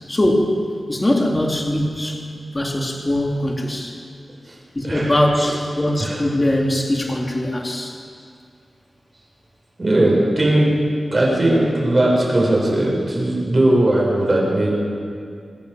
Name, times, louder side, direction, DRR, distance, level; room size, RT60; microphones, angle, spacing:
voice 1, 0.1-0.6 0.9-2.2 2.5-4.0 4.7-8.0, left 1 dB, 25° left, 1 dB, 2.8 m, -21 dB
voice 2, 9.8-10.7 11.1-14.8, right 1 dB, 35° right, -4 dB, 7.3 m, -18 dB
26.5 x 14.5 x 7.5 m, 2.3 s
wide cardioid pair, 105°, 0 cm